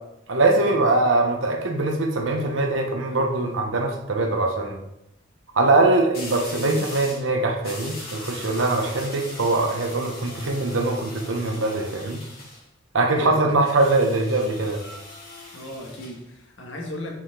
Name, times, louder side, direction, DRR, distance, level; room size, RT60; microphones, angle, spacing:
voice 1, 0.3-4.8 5.5-12.2 12.9-14.8, right 2 dB, 85° right, 3 dB, 0.9 m, -22 dB
sound 1, 3.2-3.3 6.1-7.3 7.6-12.6 13.6-16.2, left 2 dB, 50° left, 2.3 m, -40 dB
voice 2, 13.1-13.6 15.5-17.1, left 1 dB, 75° left, 0 dB, 1.4 m, -36 dB
5.8 x 4.8 x 3.7 m, 0.87 s
head